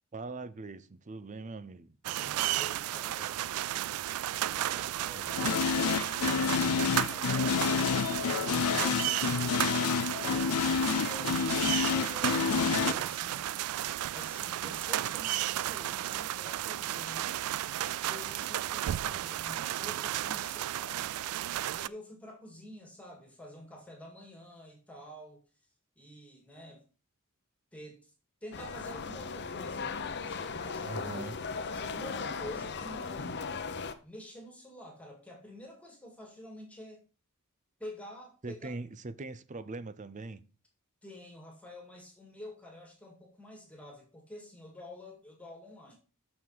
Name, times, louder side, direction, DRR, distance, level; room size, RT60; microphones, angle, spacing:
voice 1, 0.1-2.0 5.1-5.7 30.8-31.4 38.4-40.4, right 3 dB, 35° right, 0.6 m, -42 dB
rain in backyard, 2.0-21.9, right 13 dB, 85° right, 0.3 m, -33 dB
voice 2, 2.2-3.4 4.5-5.6 6.5-9.8 10.9-13.5 14.1-17.4 18.0-21.1 21.7-25.4 26.0-26.8 27.7-28.1 28.4-33.5 34.0-37.0 37.8-38.7 41.0-45.9, left 1 dB, 5° left, 2.1 m, -48 dB
sound 1, 5.4-12.9, left 6 dB, 80° left, 0.5 m, -29 dB
sound 2, 28.5-33.9, left 5 dB, 50° left, 0.8 m, -37 dB
7.1 x 6.4 x 5.6 m
head